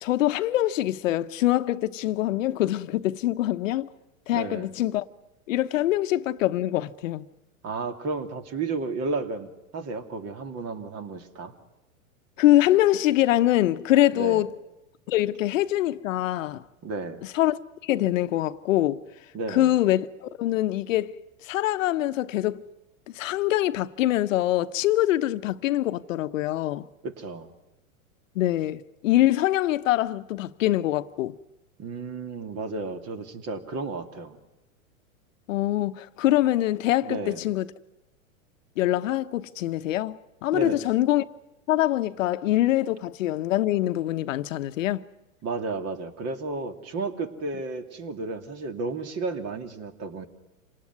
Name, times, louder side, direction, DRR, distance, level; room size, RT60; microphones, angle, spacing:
voice 1, 0.0-3.9 4.3-5.0 5.5-7.2 12.4-14.5 15.1-16.6 17.2-19.0 19.5-22.6 23.1-26.9 28.3-31.4 35.5-37.7 38.8-41.2 41.7-45.1, left 14 dB, 65° left, 1.0 m, -24 dB
voice 2, 4.3-4.7 7.6-11.5 14.1-14.4 16.8-17.2 19.3-19.7 27.0-27.5 31.8-34.4 37.0-37.4 40.5-40.8 45.4-50.3, right 3 dB, 35° right, 2.8 m, -32 dB
27.0 x 19.0 x 9.6 m
hypercardioid pair, 115°, 42 cm